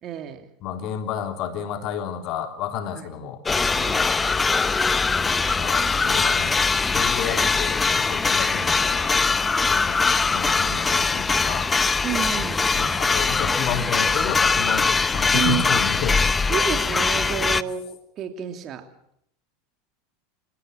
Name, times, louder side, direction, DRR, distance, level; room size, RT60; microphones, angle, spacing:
voice 1, 0.0-0.5 2.9-3.1 3.7-4.1 12.0-13.0 15.3-15.7 16.1-16.2 16.5-18.9, right 9 dB, 40° right, 7 dB, 3.0 m, -30 dB
voice 2, 0.6-3.4 5.2-6.6 6.9-9.1 9.7-11.7 12.7-16.2, left 8 dB, 50° left, 6 dB, 3.4 m, -31 dB
sound 1, 3.5-17.6, left 4 dB, 20° left, 0.8 m, -22 dB
27.5 x 17.0 x 6.5 m, 0.70 s
hypercardioid pair, 90°, 0 cm